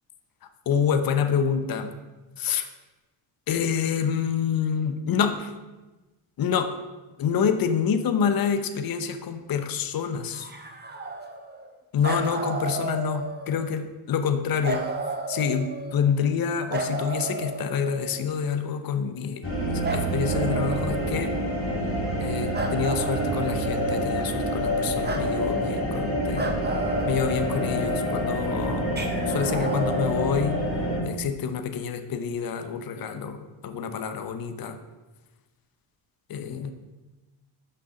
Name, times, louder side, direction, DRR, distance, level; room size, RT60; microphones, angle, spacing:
voice 1, 0.7-1.9 2.4-2.7 3.5-5.5 6.4-6.7 7.2-10.5 11.9-14.8 15.3-19.5 19.7-21.4 22.2-26.6 27.1-29.0 29.3-30.6 31.0-34.8 36.3-36.7, left 7 dB, 50° left, 8 dB, 0.9 m, -27 dB
sound 1, 10.3-11.7 12.0-13.7 14.6-16.1 16.7-18.3 19.8-21.5 22.5-24.2 25.0-25.3 26.4-28.0 29.0-30.2, right 3 dB, 20° right, 1.1 m, -33 dB
sound 2, 19.4-31.0, equal, 30° left, 3.0 m, -27 dB
6.6 x 5.4 x 6.4 m, 1.2 s
supercardioid pair, 75°, 46 cm